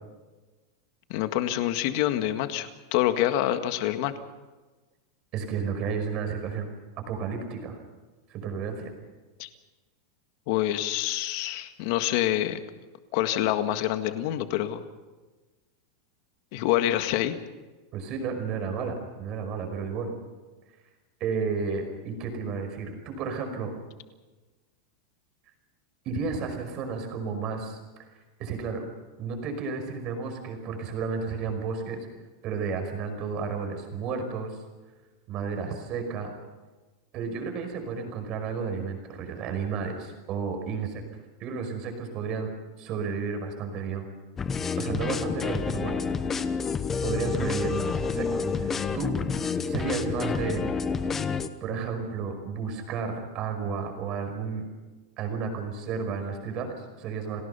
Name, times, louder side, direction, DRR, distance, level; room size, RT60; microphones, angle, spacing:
voice 1, 1.1-4.1 9.4-9.5 10.5-12.6 13.1-14.8 16.5-17.4, left 13 dB, 45° left, 9 dB, 1.8 m, -26 dB
voice 2, 5.3-6.7 7.1-7.8 8.3-8.9 17.9-20.1 21.2-23.7 26.1-27.8 28.4-28.8 29.2-32.0 32.4-34.6 35.3-36.3 37.1-41.0 41.4-42.5 42.8-44.1 44.8-46.0 47.0-49.2 49.7-50.6 51.6-54.7 55.2-57.4, right 5 dB, 30° right, 5 dB, 5.3 m, -32 dB
sound 1, 44.4-51.5, left 5 dB, 15° left, 0.9 m, -29 dB
30.0 x 19.5 x 5.7 m, 1.2 s
supercardioid pair, 170°, 2 cm